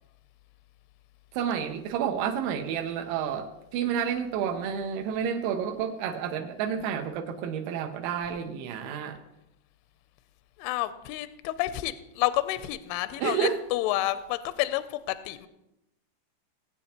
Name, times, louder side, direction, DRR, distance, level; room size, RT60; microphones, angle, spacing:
voice 1, 1.3-9.2 13.2-13.6, right 8 dB, 85° right, 4 dB, 3.5 m, -30 dB
voice 2, 10.6-15.5, left 15 dB, 85° left, 12 dB, 2.8 m, -29 dB
20.0 x 8.3 x 2.9 m, 0.89 s
omnidirectional pair, 5.9 m